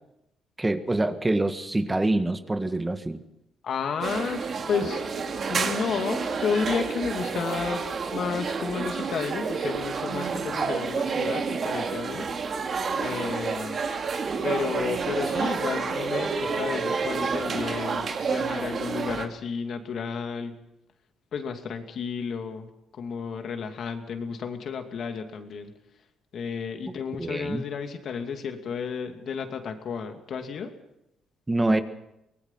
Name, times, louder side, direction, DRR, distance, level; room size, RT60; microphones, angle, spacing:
voice 1, 0.6-3.2 5.5-5.6 27.2-27.6 31.5-31.8, right 2 dB, 15° right, 9 dB, 1.7 m, -25 dB
voice 2, 3.6-5.0 5.5-7.8 8.1-12.7 13.0-13.8 14.4-20.6 21.3-22.7 22.9-25.7 26.3-30.7, left 6 dB, 60° left, 5 dB, 2.6 m, -32 dB
sound 1, 4.0-19.3, right 5 dB, 50° right, 2.3 m, -29 dB
24.0 x 19.0 x 5.8 m, 0.85 s
cardioid pair, 90°, 0 cm